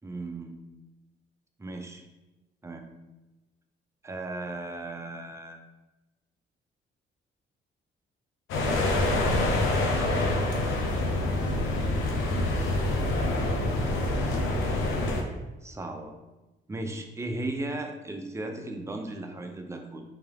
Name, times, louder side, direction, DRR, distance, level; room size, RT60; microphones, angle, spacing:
voice 1, 0.0-0.5 1.6-2.1 2.6-2.9 4.0-5.6 8.9-10.5 12.8-14.0 15.6-16.1 16.7-20.0, right 2 dB, 15° right, 3 dB, 0.5 m, -37 dB
sound 1, 8.5-15.2, left 2 dB, 90° left, 0.6 m, -26 dB
3.5 x 2.8 x 3.4 m, 1.1 s
cardioid pair, 90°, 20 cm